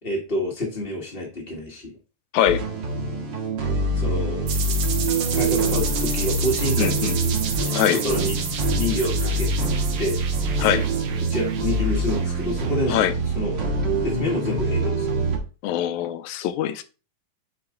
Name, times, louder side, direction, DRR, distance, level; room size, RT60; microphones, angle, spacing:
voice 1, 0.0-1.9 3.9-4.8 5.3-7.6 7.9-9.5 10.0-10.2 11.3-13.1 13.3-13.6 14.0-15.1, left 1 dB, 45° left, 0.7 m, -28 dB
sound 1, 2.5-15.4, right 2 dB, 45° right, 1.7 m, -25 dB
sound 2, 4.5-13.0, right 7 dB, 75° right, 2.4 m, -32 dB
voice 2, 6.8-7.2 7.7-8.0 10.6-10.9 12.9-13.1 15.6-16.8, left 11 dB, 80° left, 1.9 m, -22 dB
8.9 x 4.1 x 3.7 m
omnidirectional pair, 3.5 m